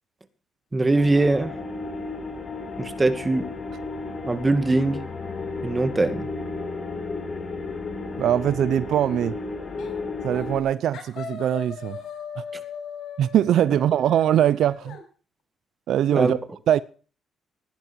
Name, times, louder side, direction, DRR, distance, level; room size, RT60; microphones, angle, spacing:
voice 1, 0.7-1.5 2.8-3.4 4.2-5.0 5.6-6.3 16.1-16.3, right 2 dB, 20° right, 2.2 m, -21 dB
sound 1, 0.9-10.6, left 3 dB, 35° left, 4.2 m, -33 dB
voice 2, 8.2-9.4 10.2-12.0 12.4-12.5 13.2-15.0 15.9-16.4 16.7-16.8, right 11 dB, 75° right, 0.6 m, -22 dB
sound 2, 9.8-10.0 10.3-10.7 10.9-15.0, left 7 dB, 75° left, 6.4 m, -39 dB
17.0 x 10.5 x 4.6 m
cardioid pair, 120°, 0 cm